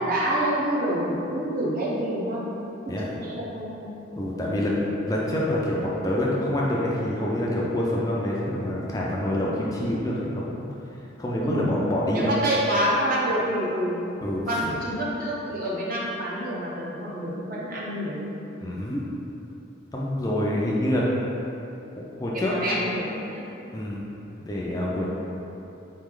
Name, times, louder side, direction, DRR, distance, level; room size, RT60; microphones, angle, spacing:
voice 1, 0.0-2.5 2.9-3.9 4.4-4.6 11.4-11.7 12.1-14.0 14.5-18.3 22.3-23.4, right 1 dB, 45° right, -5 dB, 0.7 m, -27 dB
voice 2, 4.1-10.6 11.2-12.3 14.2-14.8 18.6-19.0 19.9-21.1 22.0-22.5 23.7-24.1 24.4-25.1, left 1 dB, 20° left, -5 dB, 0.4 m, -26 dB
4.0 x 3.1 x 3.7 m, 3.0 s
head